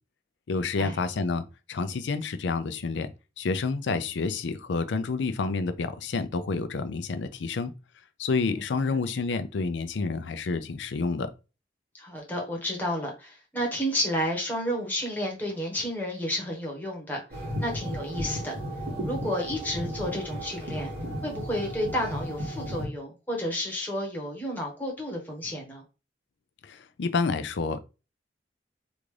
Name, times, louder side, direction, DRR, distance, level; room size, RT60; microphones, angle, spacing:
voice 1, 0.5-3.1 3.4-7.7 8.2-11.3 26.6-27.8, left 4 dB, 90° left, 0.5 m, -29 dB
voice 2, 12.0-17.2 17.6-18.5 19.0-20.9 21.2-25.8, equal, 10° left, 1.1 m, -31 dB
sound 1, 17.3-22.8, equal, 60° right, 1.7 m, -34 dB
3.5 x 2.6 x 3.2 m
head